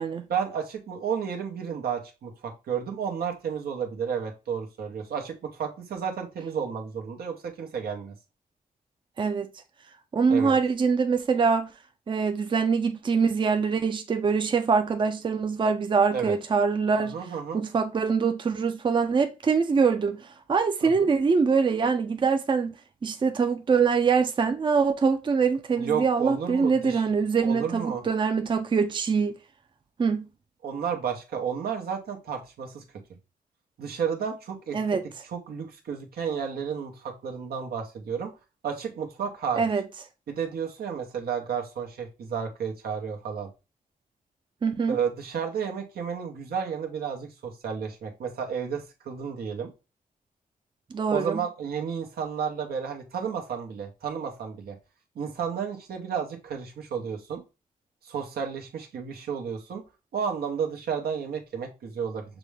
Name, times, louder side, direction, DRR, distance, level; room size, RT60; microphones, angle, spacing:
voice 1, 0.3-8.1 10.3-10.6 16.1-16.4 17.0-17.6 20.8-21.1 25.7-27.0 27.4-28.0 30.6-32.8 33.8-34.8 35.2-38.3 38.6-39.7 40.3-43.5 44.9-49.7 51.1-54.8 55.2-57.4 58.0-59.8 60.1-62.2, right 7 dB, 90° right, 0.9 m, -32 dB
voice 2, 9.2-9.5 10.1-11.7 12.1-17.2 17.5-20.2 20.5-22.7 23.0-29.3 30.0-30.3 34.7-35.0 39.6-39.8 44.6-45.0 50.9-51.4, right 5 dB, 30° right, 0.4 m, -24 dB
6.0 x 2.1 x 3.2 m
cardioid pair, 95°, 15 cm